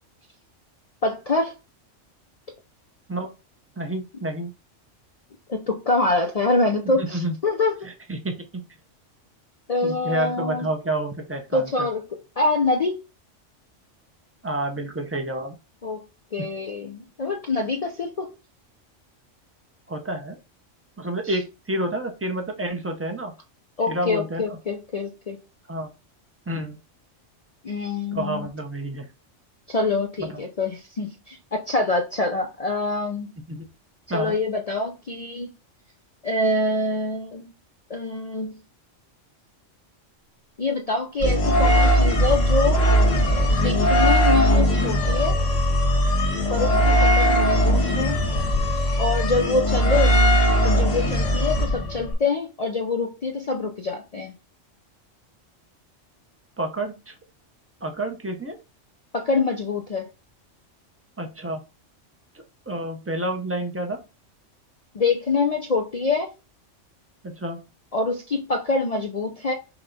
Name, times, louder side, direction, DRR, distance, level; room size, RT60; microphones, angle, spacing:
voice 1, 1.0-1.5 5.5-7.9 9.7-10.7 11.5-12.0 12.4-13.0 15.8-16.0 16.3-18.3 21.2-21.4 23.8-25.4 27.6-28.5 29.7-33.3 34.1-35.5 36.2-37.5 37.9-38.6 40.6-42.8 43.5-45.4 46.5-48.2 49.0-50.2 50.5-54.3 59.1-60.1 64.9-66.3 67.9-69.5, left 3 dB, 60° left, 0.4 m, -25 dB
voice 2, 3.8-4.5 6.9-7.4 7.8-8.6 9.8-11.9 14.4-15.5 16.4-16.5 19.9-20.4 21.0-23.3 23.9-24.4 25.7-25.9 26.5-26.8 28.1-29.1 30.2-30.4 33.5-33.7 34.1-34.3 56.6-57.1 57.8-58.6 61.2-61.6 62.7-64.0 67.2-67.7, right 1 dB, 15° right, 0.4 m, -29 dB
sound 1, 41.2-52.1, equal, 85° left, 1.6 m, -19 dB
5.8 x 2.2 x 3.9 m
omnidirectional pair, 1.3 m